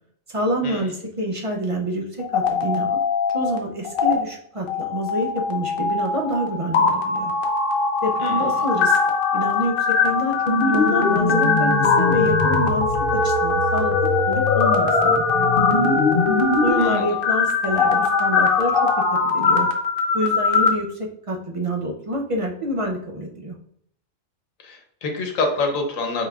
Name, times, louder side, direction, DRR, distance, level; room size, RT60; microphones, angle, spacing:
voice 1, 0.3-2.0 2.3-3.0 3.3-7.3 8.0-9.0 9.3-9.7 10.0-10.3 10.7-12.9 13.2-16.0 16.6-19.7 20.1-21.0 21.3-23.5, equal, 40° right, 0 dB, 0.4 m, -27 dB
sound 1, 2.2-3.6 3.8-4.1 4.7-20.7, left 4 dB, 50° left, 0.8 m, -20 dB
voice 2, 16.7-17.1 24.6-26.3, left 3 dB, 75° left, 2 dB, 1.3 m, -26 dB
5.4 x 4.1 x 2.4 m, 0.67 s
omnidirectional pair, 1.4 m